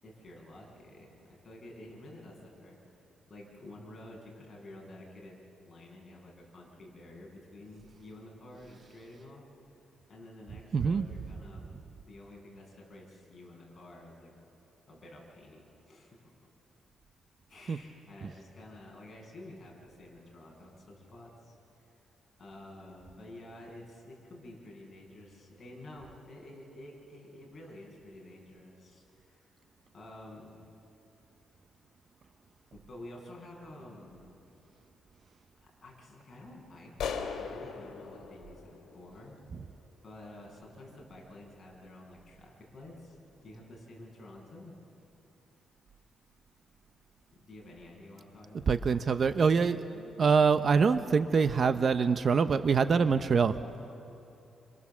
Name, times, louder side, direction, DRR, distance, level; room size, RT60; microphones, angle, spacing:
voice 1, 0.0-2.8 3.3-9.5 10.1-11.7 12.0-14.3 14.9-16.2 17.5-21.9 22.4-29.4 29.9-30.5 32.7-34.4 35.6-39.4 40.0-43.2 43.4-44.7 47.3-48.8, left 1 dB, 30° left, -2 dB, 7.4 m, -50 dB
voice 2, 10.7-11.1 17.7-17.8 48.7-53.6, right 5 dB, 40° right, 10 dB, 0.7 m, -25 dB
sound 1, 37.0-39.6, left 6 dB, 80° left, 2.5 m, -39 dB
28.5 x 26.0 x 7.3 m, 2.8 s
cardioid pair, 125°, 0 cm